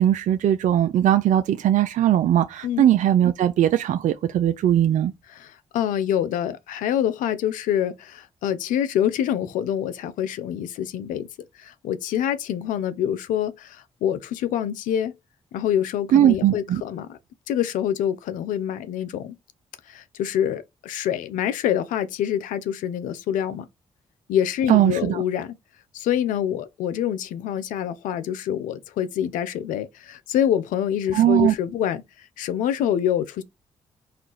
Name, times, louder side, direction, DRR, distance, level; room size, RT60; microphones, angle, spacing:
voice 1, 0.0-5.1 16.1-16.8 24.7-25.2 31.1-31.5, right 11 dB, 70° right, 0.4 m, -19 dB
voice 2, 5.3-11.3 11.6-15.1 15.5-17.2 17.5-19.4 19.9-23.7 24.3-25.5 25.9-33.4, left 10 dB, 85° left, 0.6 m, -26 dB
4.4 x 2.4 x 3.8 m
supercardioid pair, 50°, 13 cm